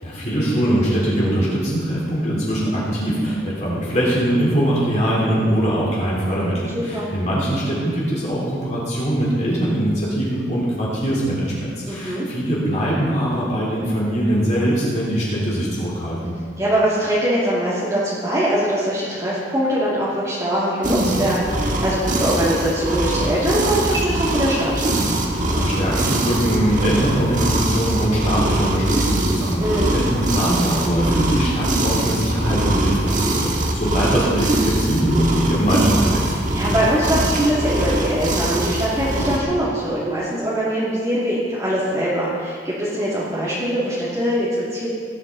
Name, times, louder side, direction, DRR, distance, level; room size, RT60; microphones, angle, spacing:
voice 1, 0.0-16.3 25.4-36.2, equal, 40° left, -6 dB, 3.6 m, -22 dB
voice 2, 6.7-7.1 11.8-12.3 16.6-24.7 29.6-29.9 34.1-34.2 36.5-44.9, equal, 20° right, -11 dB, 2.5 m, -22 dB
sound 1, 20.8-39.4, right 1 dB, 45° right, 1.6 m, -22 dB
18.5 x 9.4 x 4.1 m, 2.1 s
head